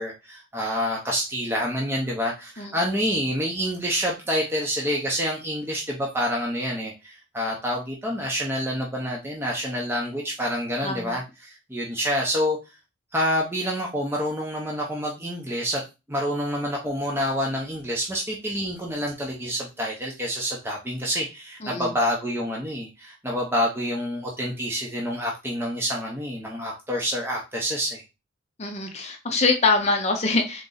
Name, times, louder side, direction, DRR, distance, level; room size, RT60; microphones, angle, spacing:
voice 1, 0.0-12.6 13.1-15.8 16.1-28.0, equal, 10° right, -2 dB, 0.7 m, -27 dB
voice 2, 10.8-11.2 21.6-21.9 28.6-30.7, left 3 dB, 30° left, 4 dB, 0.7 m, -24 dB
3.9 x 3.0 x 3.9 m, 0.27 s
head